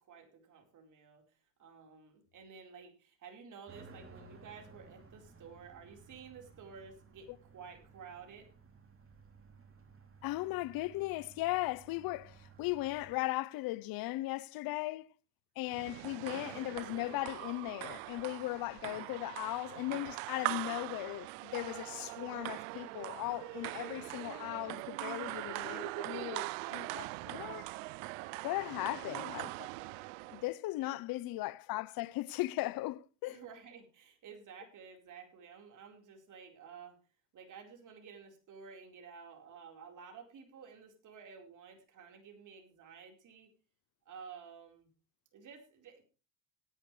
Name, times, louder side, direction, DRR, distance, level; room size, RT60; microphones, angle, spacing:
voice 1, 0.0-8.5 28.2-29.1 30.8-30.9 33.2-37.0 37.3-43.5 44.1-44.9 45.3-46.1, right 6 dB, 55° right, 4.5 m, -53 dB
sound 1, 3.7-13.2, right 4 dB, 35° right, 3.0 m, -57 dB
voice 2, 10.2-15.1 15.6-27.7 28.4-29.7 30.3-33.4, left 18 dB, 65° left, 0.8 m, -37 dB
sound 2, 15.7-30.5, right 23 dB, 90° right, 0.5 m, -42 dB
17.5 x 10.5 x 3.3 m
supercardioid pair, 80°, 37 cm